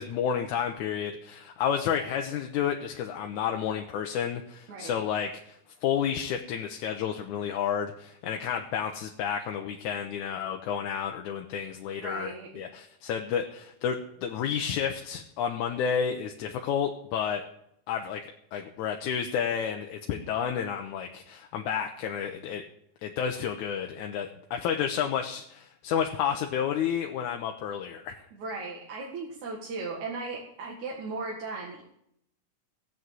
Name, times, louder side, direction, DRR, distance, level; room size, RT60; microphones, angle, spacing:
voice 1, 0.0-17.4 17.9-18.2 18.5-22.6 23.0-28.2, left 8 dB, 80° left, 3 dB, 2.3 m, -31 dB
voice 2, 12.0-12.5 28.3-31.8, right 3 dB, 75° right, -2 dB, 3.3 m, -37 dB
16.0 x 8.1 x 7.7 m, 0.73 s
omnidirectional pair, 3.4 m